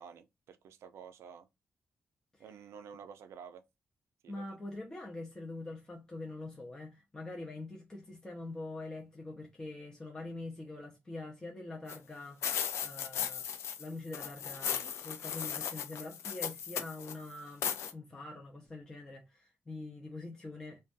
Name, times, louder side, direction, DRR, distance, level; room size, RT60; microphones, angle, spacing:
voice 1, 0.0-1.5 2.4-3.6 4.2-4.4 14.6-14.9, right 7 dB, 85° right, 0.4 m, -51 dB
voice 2, 4.3-13.5 13.8-20.8, left 2 dB, 15° left, 0.5 m, -44 dB
sound 1, 11.9-12.0 12.4-13.9 14.1-17.1 17.6-17.9, left 8 dB, 85° left, 0.4 m, -36 dB
2.6 x 2.2 x 2.5 m
wide cardioid pair, 135°, 5 cm